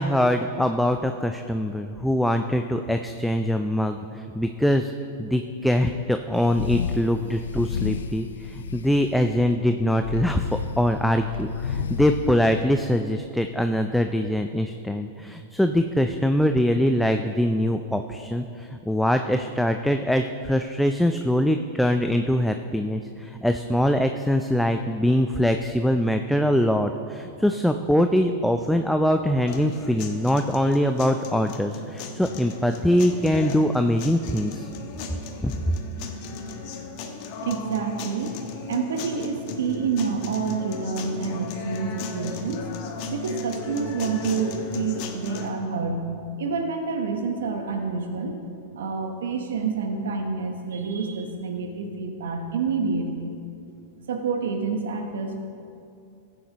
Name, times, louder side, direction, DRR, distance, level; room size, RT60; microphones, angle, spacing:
voice 1, 0.0-4.9 5.2-34.7 35.4-35.5, equal, ahead, 6 dB, 0.4 m, -23 dB
sound 1, 6.4-7.0 7.4-9.5 10.0-12.9, left 7 dB, 80° left, 0.4 m, -32 dB
sound 2, 29.5-45.5, left 3 dB, 50° left, 1.1 m, -36 dB
voice 2, 37.4-38.4 38.7-42.7 43.1-46.1 46.4-48.4 48.7-53.3 54.1-55.4, right 5 dB, 80° right, 4 dB, 1.0 m, -28 dB
14.5 x 9.4 x 3.0 m, 2.5 s
hypercardioid pair, 110°, 0 cm